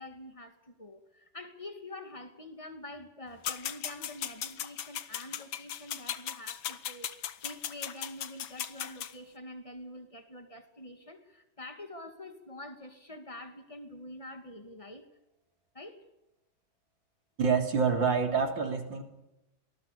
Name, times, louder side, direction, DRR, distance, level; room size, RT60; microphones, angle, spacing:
voice 1, 0.0-15.1 15.7-16.0, left 1 dB, 15° left, 7 dB, 2.5 m, -46 dB
sound 1, 3.4-9.1, left 10 dB, 90° left, 1.9 m, -37 dB
voice 2, 17.4-19.0, right 5 dB, 70° right, 4 dB, 4.0 m, -27 dB
25.0 x 19.0 x 7.0 m, 0.92 s
omnidirectional pair, 2.1 m